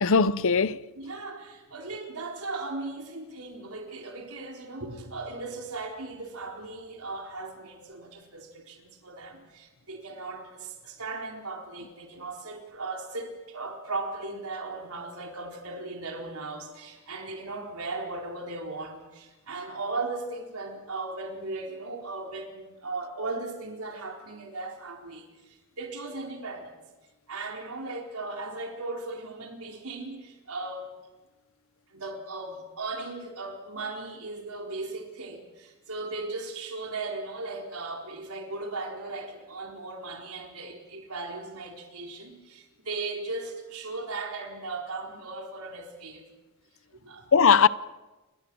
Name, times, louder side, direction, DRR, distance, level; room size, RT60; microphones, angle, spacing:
voice 1, 0.0-0.8 47.3-47.7, left 5 dB, 65° left, 0.8 m, -19 dB
voice 2, 1.0-26.8 27.3-31.0 31.9-46.3 47.0-47.3, right 3 dB, 85° right, 4.3 m, -37 dB
29.0 x 22.0 x 6.3 m
head